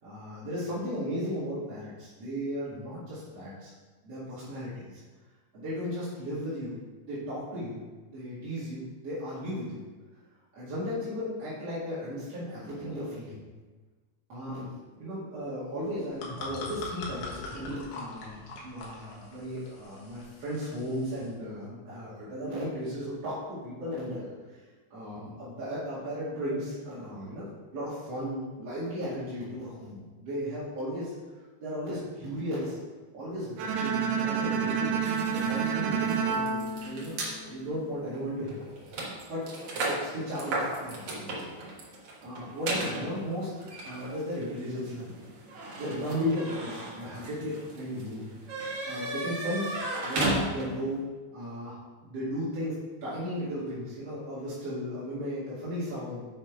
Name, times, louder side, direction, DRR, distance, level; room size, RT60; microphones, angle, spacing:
voice 1, 0.0-3.7 4.0-5.0 5.5-6.8 7.0-7.8 8.1-9.8 10.5-13.4 14.3-24.3 24.9-27.4 27.7-31.1 31.6-32.8 33.1-38.6 38.9-39.0 39.3-39.5 39.7-41.6 42.2-45.2 45.8-48.3 48.8-51.0 51.3-51.8 52.0-56.3, equal, 45° right, -11 dB, 2.6 m, -35 dB
sound 1, 15.8-21.3, left 3 dB, 80° left, 3.6 m, -42 dB
Bowed string instrument, 33.6-37.7, right 6 dB, 90° right, 2.9 m, -29 dB
sound 2, 35.0-37.4 38.1-38.2 38.5-50.9, right 2 dB, 70° right, 1.3 m, -35 dB
8.1 x 6.2 x 4.6 m, 1.3 s
omnidirectional pair, 4.9 m